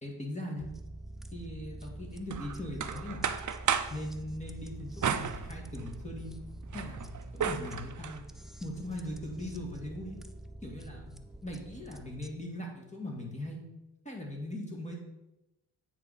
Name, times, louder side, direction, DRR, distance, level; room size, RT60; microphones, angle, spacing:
voice 1, 0.0-0.7 1.3-3.3 3.9-6.3 6.7-8.2 8.6-10.2 10.6-11.1 11.4-13.6 14.0-15.0, left 1 dB, 15° left, -1 dB, 2.1 m, -40 dB
sound 1, 0.6-12.3, right 1 dB, ahead, 0.5 m, -46 dB
sound 2, 2.3-4.0 5.0-6.1 6.5-8.2, right 7 dB, 50° right, 0.6 m, -34 dB
8.9 x 4.9 x 4.2 m, 0.95 s
cardioid pair, 70°, 40 cm